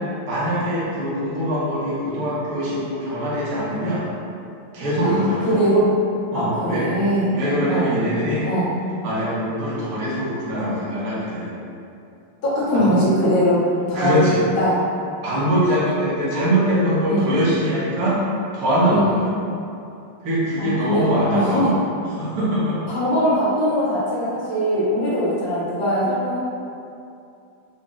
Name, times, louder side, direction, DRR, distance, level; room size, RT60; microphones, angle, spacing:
voice 1, 0.3-4.0 4.7-5.6 6.3-7.0 7.3-8.5 9.0-11.6 12.7-13.0 13.9-14.4 15.2-18.2 18.5-19.3 20.2-21.8 22.1-22.8, equal, 60° right, -9 dB, 1.3 m, -22 dB
voice 2, 5.0-6.0 6.3-7.3 7.7-7.9 8.4-8.7 12.4-14.8 17.0-17.3 18.9-19.2 20.6-21.8 22.9-26.4, equal, 35° left, -11 dB, 1.1 m, -21 dB
4.0 x 2.2 x 3.6 m, 2.6 s
omnidirectional pair, 2.0 m